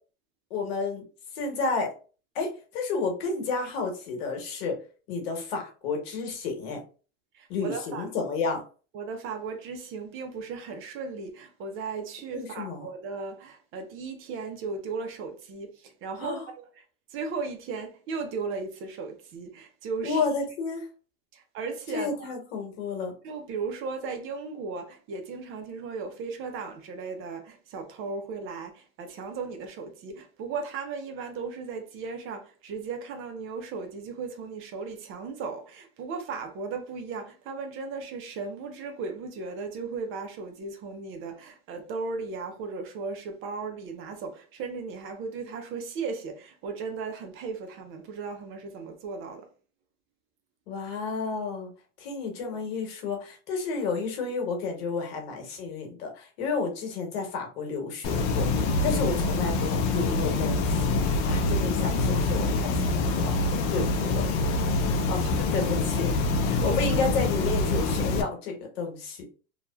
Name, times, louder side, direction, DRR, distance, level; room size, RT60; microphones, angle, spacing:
voice 1, 0.5-1.0 1.3-1.9 2.3-4.8 5.1-6.8 7.5-8.6 12.3-12.9 16.2-16.5 20.0-20.9 21.9-23.1 50.7-51.7 52.0-58.5 58.8-64.5 65.1-66.1 66.4-69.2, left 4 dB, 75° left, 1.1 m, -31 dB
voice 2, 7.3-8.1 8.9-16.8 17.1-20.2 21.3-22.3 23.2-49.5 65.4-65.6 66.6-66.8, right 4 dB, 45° right, 0.7 m, -36 dB
sound 1, 58.0-68.2, left 3 dB, 55° left, 0.5 m, -25 dB
2.8 x 2.3 x 2.2 m
supercardioid pair, 115°, 30 cm